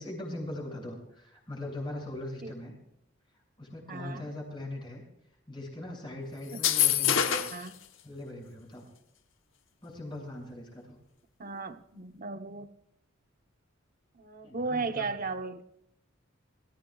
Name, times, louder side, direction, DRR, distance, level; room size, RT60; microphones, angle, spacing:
voice 1, 0.0-2.8 3.6-5.0 5.5-7.4 8.0-8.9 9.8-11.0 14.4-15.3, left 1 dB, 25° left, 0 dB, 6.7 m, -40 dB
voice 2, 3.9-4.2 6.5-6.6 7.5-7.8 11.4-12.7 14.1-15.6, right 4 dB, 40° right, 8 dB, 1.0 m, -35 dB
sound 1, 6.5-7.7, left 10 dB, 65° left, 1.1 m, -25 dB
25.0 x 15.5 x 2.4 m, 0.77 s
head